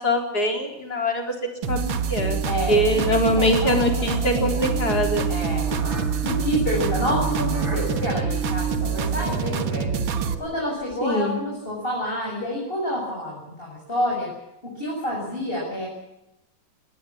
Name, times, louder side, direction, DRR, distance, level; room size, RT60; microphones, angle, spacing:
voice 1, 0.0-1.3 1.7-2.4 2.7-5.2 11.0-11.4, left 1 dB, 50° left, 4 dB, 4.5 m, -23 dB
sound 1, 1.6-10.3, right 6 dB, 70° right, 2.2 m, -26 dB
sound 2, 2.2-11.3, right 6 dB, 30° right, 3.5 m, -34 dB
voice 2, 2.5-3.8 4.1-4.5 5.3-5.7 6.2-9.9 10.4-14.3 14.8-15.9, left 1 dB, 25° left, -3 dB, 7.1 m, -28 dB
20.0 x 19.0 x 8.6 m, 0.89 s
omnidirectional pair, 2.2 m